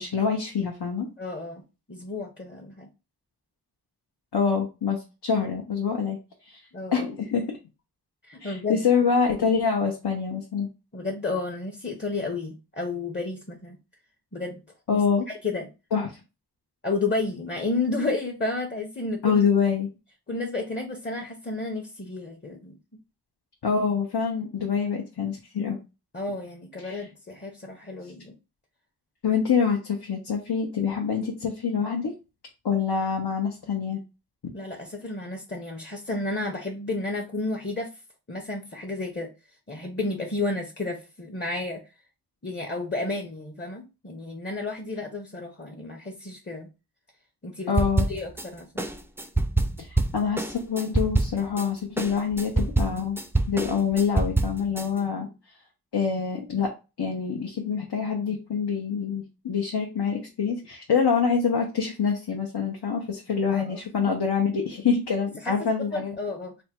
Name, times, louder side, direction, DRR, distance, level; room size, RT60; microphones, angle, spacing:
voice 1, 0.0-1.1 4.3-6.2 6.5-6.6 6.9-7.4 8.4-10.7 14.9-15.3 15.9-16.1 19.2-19.9 23.6-25.8 26.8-27.0 29.2-32.1 32.6-34.0 47.7-48.1 49.8-53.2 53.5-55.3 55.9-56.7 57.0-66.2, left 6 dB, 80° left, 0.7 m, -26 dB
voice 2, 1.2-1.6 1.9-2.9 6.7-7.1 8.3-8.8 10.9-13.8 14.3-14.6 14.9-15.0 15.3-15.7 16.8-19.4 20.3-22.8 26.1-28.3 34.5-37.9 38.3-39.3 39.7-41.8 42.4-46.7 47.4-47.7 48.1-48.8 63.5-63.8 65.4-66.5, left 3 dB, 25° left, 0.7 m, -32 dB
sound 1, 47.8-48.4 48.8-51.6 52.0-54.8, right 2 dB, 5° right, 0.3 m, -25 dB
3.4 x 2.1 x 4.3 m
wide cardioid pair, 45°, 40 cm